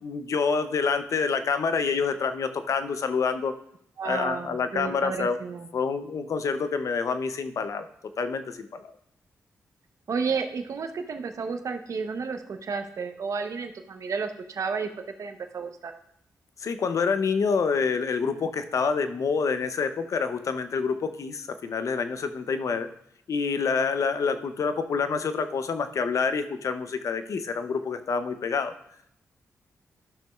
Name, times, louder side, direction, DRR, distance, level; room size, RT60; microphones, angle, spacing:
voice 1, 0.0-3.5 4.0-5.4 5.7-7.9 8.2-8.9 16.6-22.9 23.3-28.7, left 5 dB, 65° left, 10 dB, 0.6 m, -27 dB
voice 2, 4.0-5.7 10.1-14.9 15.2-15.9, right 5 dB, 65° right, 6 dB, 0.8 m, -32 dB
13.0 x 6.0 x 2.4 m, 0.73 s
cardioid pair, 60°, 6 cm